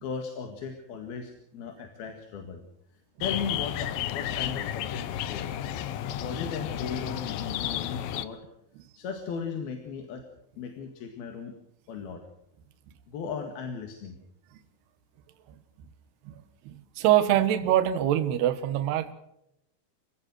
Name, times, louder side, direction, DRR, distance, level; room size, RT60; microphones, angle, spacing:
voice 1, 0.0-2.6 2.9-5.0 5.3-5.6 6.2-8.4 9.0-10.2 10.6-11.5 11.9-12.2 13.1-14.2, left 6 dB, 60° left, 5 dB, 3.5 m, -36 dB
sound 1, 3.2-8.3, left 11 dB, 75° left, 2.1 m, -32 dB
voice 2, 16.3-19.1, right 12 dB, 70° right, 10 dB, 3.2 m, -24 dB
27.5 x 16.5 x 6.3 m, 0.82 s
omnidirectional pair, 5.3 m